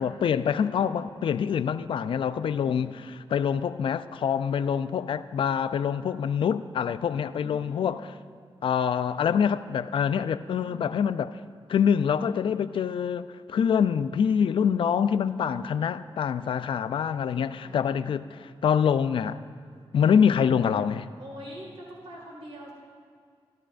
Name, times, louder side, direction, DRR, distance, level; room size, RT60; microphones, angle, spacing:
voice 1, 0.0-8.1 8.6-11.4 11.7-19.4 19.9-21.1, left 7 dB, 65° left, 0.3 m, -25 dB
voice 2, 0.5-1.0 2.4-3.0 7.1-8.0 10.6-11.1 15.3-15.9 17.3-18.4 21.2-22.7, right 1 dB, 75° right, 2.0 m, -45 dB
13.5 x 13.0 x 2.5 m
wide cardioid pair, 100°, 10 cm